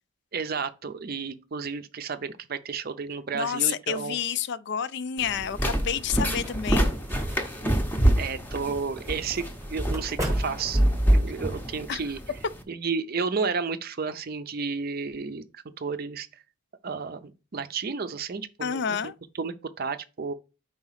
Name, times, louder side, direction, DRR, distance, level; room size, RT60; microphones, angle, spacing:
voice 1, 0.3-4.2 8.2-10.8 11.1-12.2 12.7-16.4 16.8-19.1 19.4-20.3, right 5 dB, 45° right, 0.5 m, -32 dB
voice 2, 3.3-6.9 11.9-12.0 18.6-19.1, left 8 dB, 55° left, 0.4 m, -29 dB
sound 1, 5.2-12.6, right 1 dB, 10° left, 0.7 m, -26 dB
sound 2, 6.0-11.3, equal, 15° right, 1.0 m, -39 dB
4.9 x 4.0 x 5.6 m
head